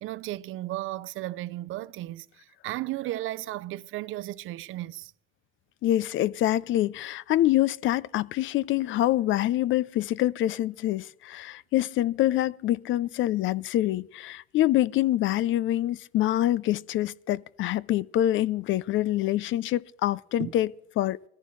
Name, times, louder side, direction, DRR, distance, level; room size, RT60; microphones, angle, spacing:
voice 1, 0.0-2.3 2.6-5.1 20.4-20.5, right 16 dB, 85° right, 0.6 m, -34 dB
voice 2, 5.8-20.7 21.0-21.2, left 14 dB, 80° left, 0.5 m, -25 dB
20.5 x 14.0 x 3.2 m
cardioid pair, 90°, 20 cm